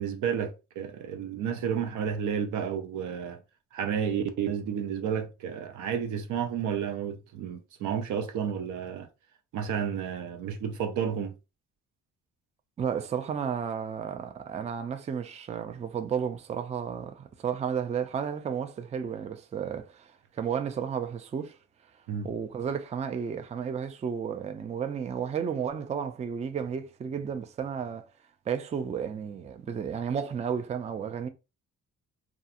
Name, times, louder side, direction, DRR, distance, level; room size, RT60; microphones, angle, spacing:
voice 1, 0.0-3.4 3.7-9.1 9.5-11.3 22.1-22.3, right 8 dB, 80° right, 0.6 m, -31 dB
voice 2, 12.8-21.6 22.2-28.1 28.5-31.3, right 7 dB, 25° right, 0.3 m, -32 dB
2.4 x 2.3 x 2.7 m
cardioid pair, 90°, 30 cm